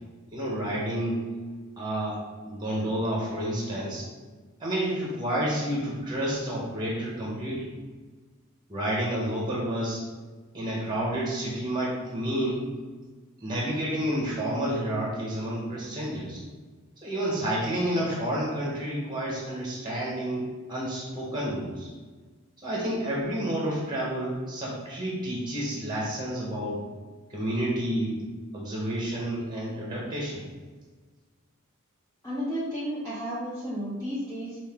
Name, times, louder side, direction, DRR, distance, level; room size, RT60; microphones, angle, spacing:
voice 1, 0.3-1.3 1.8-4.0 4.6-7.7 8.7-10.0 10.5-12.6 13.4-16.4 17.0-21.9 22.6-26.8 27.3-28.2 28.5-30.4, right 1 dB, 20° right, -4 dB, 1.0 m, -30 dB
voice 2, 32.2-34.6, equal, 15° left, -9 dB, 0.8 m, -32 dB
5.5 x 2.5 x 3.5 m, 1.4 s
head